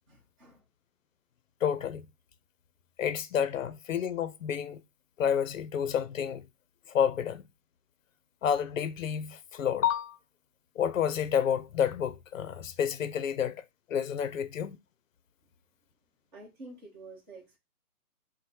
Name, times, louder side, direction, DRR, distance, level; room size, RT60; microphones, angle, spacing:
voice 1, 0.1-0.6 15.4-15.6 16.3-17.6, right 2 dB, 30° right, 1.0 m, -49 dB
voice 2, 1.6-2.0 3.0-4.8 5.2-6.4 6.9-7.4 8.4-10.2 10.8-13.6 13.9-14.8, left 8 dB, 60° left, 0.5 m, -29 dB
3.1 x 2.1 x 4.1 m
hypercardioid pair, 155°, 46 cm